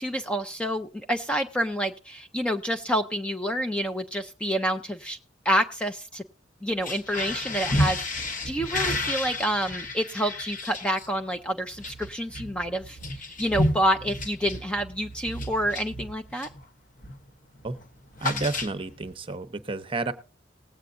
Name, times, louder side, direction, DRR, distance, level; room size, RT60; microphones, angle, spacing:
voice 1, 0.0-5.2 5.4-6.2 6.6-16.5, equal, 5° left, 6 dB, 0.5 m, -28 dB
sound 1, 6.7-16.7 17.0-17.3 17.5-19.1, left 1 dB, 45° left, 1.0 m, -31 dB
voice 2, 18.2-20.1, right 3 dB, 30° right, 11 dB, 0.8 m, -31 dB
19.5 x 8.1 x 2.5 m, 0.42 s
head